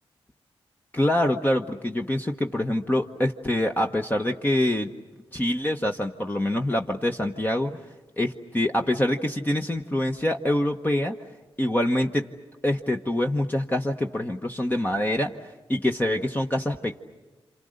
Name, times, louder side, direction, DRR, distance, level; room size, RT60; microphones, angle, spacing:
voice 1, 0.9-4.9 5.3-7.8 8.2-11.1 11.6-12.3 12.6-17.0, left 1 dB, 20° left, 3 dB, 1.2 m, -25 dB
28.5 x 27.0 x 6.6 m, 1.2 s
cardioid pair, 70°, 10 cm